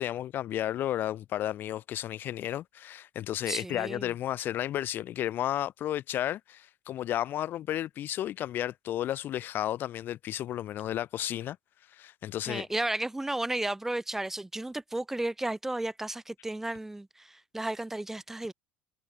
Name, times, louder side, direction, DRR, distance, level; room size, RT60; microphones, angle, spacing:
voice 1, 0.0-11.6 11.9-12.7, left 12 dB, 50° left, 0.4 m, -33 dB
voice 2, 3.5-4.1 12.5-18.5, right 1 dB, 10° right, 0.7 m, -33 dB
hypercardioid pair, 80°, 5 cm